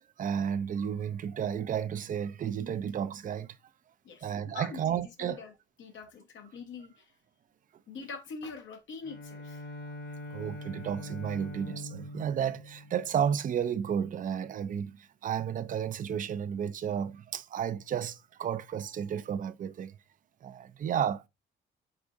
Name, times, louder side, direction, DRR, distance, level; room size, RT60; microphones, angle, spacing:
voice 1, 0.2-3.6 4.2-5.4 10.3-20.0 20.4-21.3, right 8 dB, 40° right, 0.4 m, -32 dB
voice 2, 4.0-5.5 5.8-7.1 7.9-9.7, left 5 dB, 70° left, 1.1 m, -44 dB
Bowed string instrument, 9.0-13.7, left 1 dB, 50° left, 1.2 m, -43 dB
4.8 x 3.6 x 2.6 m
cardioid pair, 90°, 20 cm